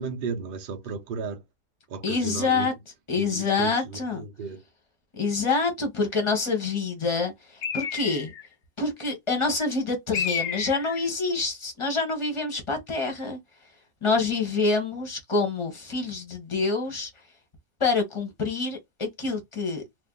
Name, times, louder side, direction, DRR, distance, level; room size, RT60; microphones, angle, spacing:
voice 1, 0.0-1.4 1.9-2.7 3.1-4.6, right 5 dB, 65° right, 0.5 m, -34 dB
voice 2, 2.0-2.7 3.1-4.2 5.2-8.3 8.8-13.4 14.0-17.1 17.8-19.8, left 4 dB, 25° left, 0.8 m, -26 dB
Bird, 7.6-8.5 10.1-11.1, left 7 dB, 65° left, 0.6 m, -31 dB
2.7 x 2.5 x 3.7 m
omnidirectional pair, 1.8 m